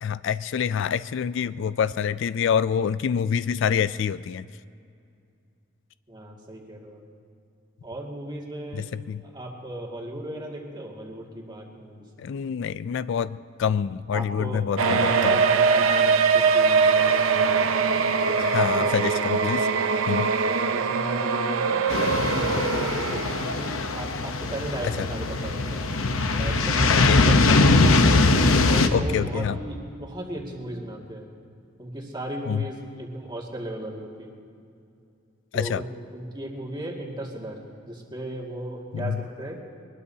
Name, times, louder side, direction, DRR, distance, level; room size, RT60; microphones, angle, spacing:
voice 1, 0.0-4.4 8.7-9.2 12.2-15.4 18.4-19.7 20.1-20.3 25.0-25.1 26.9-27.2 28.9-29.6 32.5-32.6 35.5-35.8 38.9-39.2, left 7 dB, 65° left, 16 dB, 0.3 m, -26 dB
voice 2, 6.1-7.0 7.8-8.9 9.2-12.1 14.1-17.7 18.1-18.9 19.9-25.9 26.3-27.8 28.1-28.4 28.7-31.3 31.8-34.3 35.5-39.6, right 1 dB, 20° right, -2 dB, 2.1 m, -36 dB
sound 1, 14.8-24.1 24.4-24.5 25.3-25.4 25.8-25.9, right 5 dB, 85° right, 0.7 m, -22 dB
sound 2, 21.9-28.9, left 3 dB, 85° left, 0.8 m, -21 dB
23.0 x 20.0 x 2.8 m, 2.4 s
head